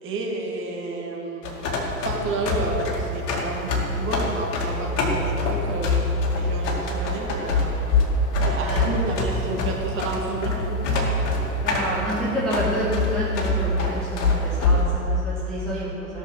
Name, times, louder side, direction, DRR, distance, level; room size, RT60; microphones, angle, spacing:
voice 1, 0.0-1.5 2.0-7.8 8.4-11.1, right 3 dB, 25° right, -1 dB, 2.2 m, -31 dB
sound 1, 1.4-14.8, left 2 dB, 45° left, 2.4 m, -24 dB
voice 2, 8.6-9.0 11.6-16.2, right 1 dB, ahead, -11 dB, 2.7 m, -29 dB
16.5 x 6.4 x 6.7 m, 2.9 s
figure-of-eight pair, 95°, 48 cm